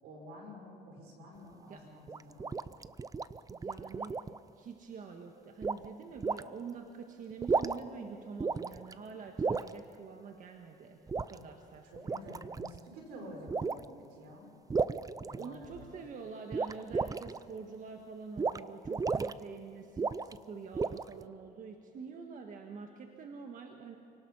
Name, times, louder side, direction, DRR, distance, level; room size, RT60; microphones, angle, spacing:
voice 1, 0.0-2.5 11.3-11.5 11.9-14.5 15.3-15.9, equal, 85° right, 1 dB, 6.2 m, -49 dB
sound 1, 2.1-4.4 5.6-5.8 6.2-6.4 7.3-8.0 8.4-8.9 9.4-9.7 11.1-11.3 11.9-12.8 13.5-13.9 14.7-15.8 16.5-17.4 18.4-18.6 18.8-19.3 20.0-20.4 20.7-21.2, right 4 dB, 20° right, 0.5 m, -33 dB
voice 2, 3.5-4.2 4.5-12.4 15.4-24.0, right 5 dB, 50° right, 3 dB, 1.7 m, -46 dB
28.0 x 19.0 x 5.7 m, 2.7 s
cardioid pair, 110°, 17 cm